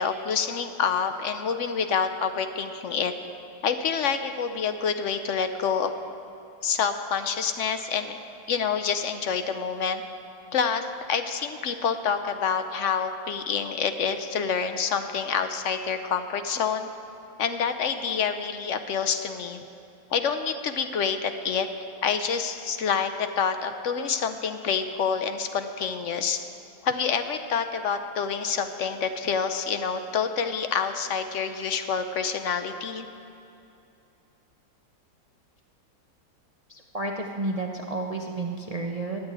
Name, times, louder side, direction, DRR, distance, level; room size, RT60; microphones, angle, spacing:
voice 1, 0.0-3.1 3.6-5.9 6.6-8.2 8.5-10.0 10.5-16.9 17.4-19.6 20.1-21.7 22.0-26.4 26.8-33.1, left 6 dB, 65° left, 8 dB, 0.7 m, -27 dB
voice 2, 36.7-39.2, right 2 dB, 85° right, 1 dB, 0.3 m, -31 dB
13.5 x 8.9 x 8.8 m, 2.7 s
omnidirectional pair, 2.0 m